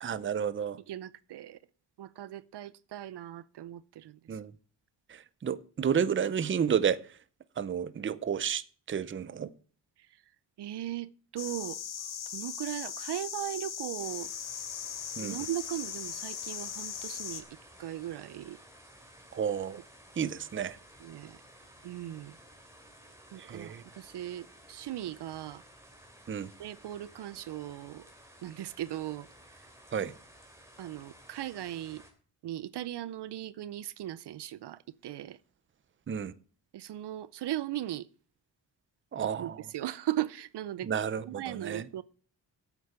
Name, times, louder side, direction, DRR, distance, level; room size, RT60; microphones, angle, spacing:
voice 1, 0.0-0.8 4.3-4.5 5.1-7.0 7.6-9.5 15.2-15.4 19.3-19.8 20.2-20.8 23.4-23.8 26.3-26.5 29.9-30.1 36.1-36.3 39.1-39.6 40.8-41.8, right 7 dB, 30° right, 0.6 m, -31 dB
voice 2, 0.9-1.6 2.0-4.4 10.6-11.8 12.3-14.3 15.2-18.6 21.0-21.4 21.8-22.4 23.3-25.6 26.6-28.1 28.4-29.3 30.8-32.0 32.4-35.4 36.7-38.1 39.4-40.9 41.3-42.0, right 13 dB, 70° right, 0.6 m, -38 dB
sound 1, 11.4-17.4, left 8 dB, 60° left, 1.4 m, -39 dB
sound 2, 14.0-32.1, equal, 5° right, 3.0 m, -55 dB
8.5 x 8.2 x 6.7 m
cardioid pair, 115°, 43 cm